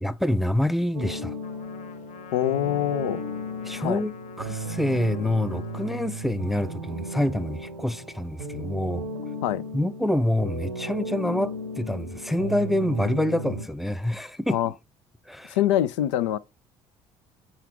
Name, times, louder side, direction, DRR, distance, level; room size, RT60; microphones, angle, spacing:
voice 1, 0.0-1.3 3.6-4.1 4.4-9.0 9.7-14.6 15.3-15.6, left 1 dB, ahead, 0.5 m, -26 dB
sound 1, 0.9-13.7, equal, 80° right, 0.8 m, -35 dB
Trumpet, 1.4-6.1, left 9 dB, 50° left, 1.0 m, -48 dB
voice 2, 2.3-3.2 3.8-4.0 9.4-9.6 14.5-14.7 15.5-16.4, left 12 dB, 65° left, 0.5 m, -24 dB
6.1 x 5.7 x 3.5 m
figure-of-eight pair, 50°, 16 cm